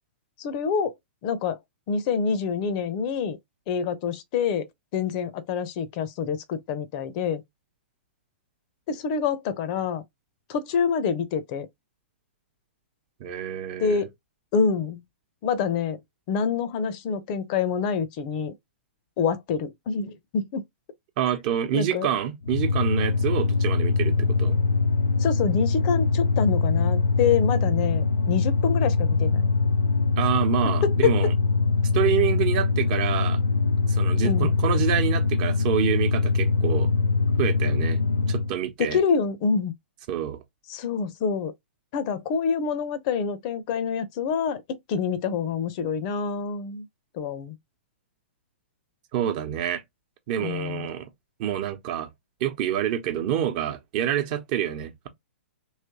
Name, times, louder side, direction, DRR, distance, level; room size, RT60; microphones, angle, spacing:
voice 1, 0.4-0.9 1.2-1.6 1.9-3.4 3.7-7.4 8.9-10.0 10.5-11.7 13.8-14.1 14.5-15.0 15.4-16.0 16.3-18.5 19.2-20.6 21.7-22.1 25.2-29.4 31.0-31.1 34.2-34.5 38.8-39.7 40.7-41.5 41.9-46.9 47.1-47.6 50.4-50.9, left 6 dB, 40° left, 0.6 m, -26 dB
voice 2, 13.2-14.1 21.2-24.6 30.2-31.3 31.9-33.4 33.9-36.9 37.4-38.0 38.3-39.0 40.1-40.4 49.1-49.8 50.3-51.1 51.4-52.1 52.4-55.1, right 10 dB, 45° right, 0.9 m, -27 dB
sound 1, 22.4-38.5, left 4 dB, 85° left, 0.5 m, -23 dB
3.2 x 3.0 x 2.8 m
figure-of-eight pair, 115°, 6 cm